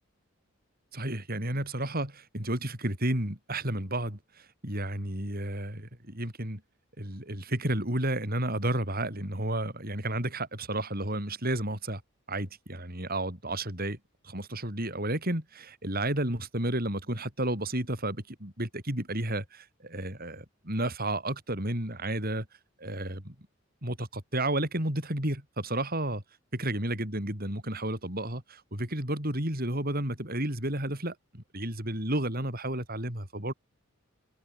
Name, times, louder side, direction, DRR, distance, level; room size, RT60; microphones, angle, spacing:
voice 1, 0.9-6.6 7.0-12.0 12.3-14.0 14.2-22.5 22.8-23.4 23.8-26.2 26.5-33.5, right 1 dB, 45° right, 7.0 m, -32 dB
head